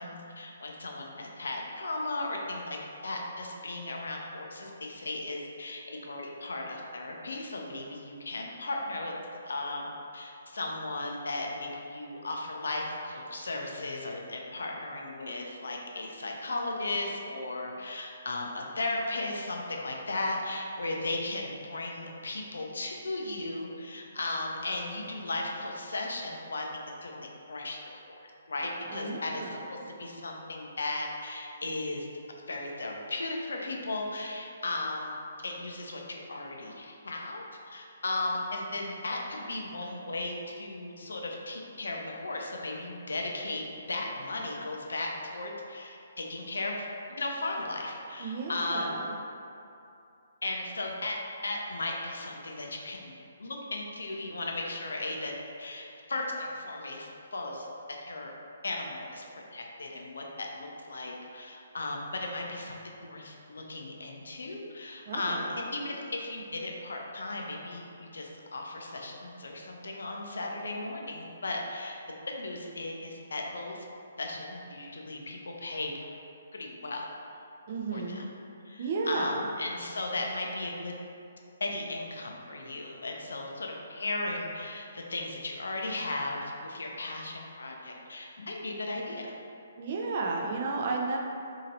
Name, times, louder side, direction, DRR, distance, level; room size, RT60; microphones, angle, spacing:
voice 1, 0.0-9.1 9.4-27.8 28.1-28.2 28.5-32.1 32.5-35.2 35.4-46.9 47.2-48.9 50.4-51.2 51.4-53.1 53.4-55.3 55.6-57.7 58.1-58.3 58.6-72.0 72.3-73.9 74.2-75.9 76.5-77.1 77.9-78.3 78.6-81.0 81.6-89.3, left 2 dB, 70° left, 0 dB, 0.4 m, -36 dB
voice 2, 28.9-29.5 48.2-49.1 65.1-65.5 77.7-78.2 78.8-79.4 89.8-91.2, right 3 dB, 45° right, 0 dB, 0.4 m, -33 dB
2.9 x 2.7 x 2.6 m, 2.6 s
figure-of-eight pair, 135°, 0 cm